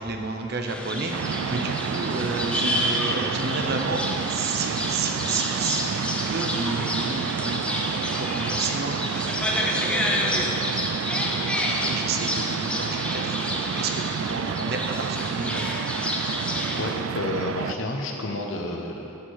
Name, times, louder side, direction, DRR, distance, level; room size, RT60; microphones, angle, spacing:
voice 1, 0.0-11.3 11.7-13.4 13.8-15.6, right 3 dB, 50° right, 3 dB, 0.7 m, -31 dB
sound 1, 0.7-17.0, left 1 dB, 5° left, 0.5 m, -29 dB
sound 2, 1.1-17.7, right 7 dB, 80° right, 0.3 m, -30 dB
voice 2, 16.8-19.1, left 2 dB, 75° left, 2 dB, 0.9 m, -30 dB
13.0 x 4.5 x 4.8 m, 2.8 s
head